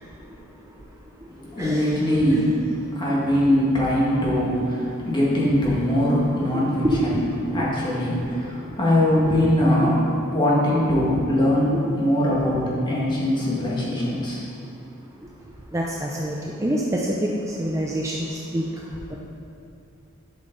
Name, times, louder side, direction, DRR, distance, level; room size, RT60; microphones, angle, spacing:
voice 1, 1.4-7.2 7.5-10.0 10.3-14.4, left 1 dB, 20° left, -6 dB, 1.8 m, -22 dB
voice 2, 6.5-7.0 7.5-7.6 9.8-9.9 11.8-12.0 15.7-17.0 17.6-18.1 18.5-18.6, equal, 15° right, -3 dB, 0.5 m, -26 dB
11.5 x 5.7 x 3.9 m, 2.6 s
head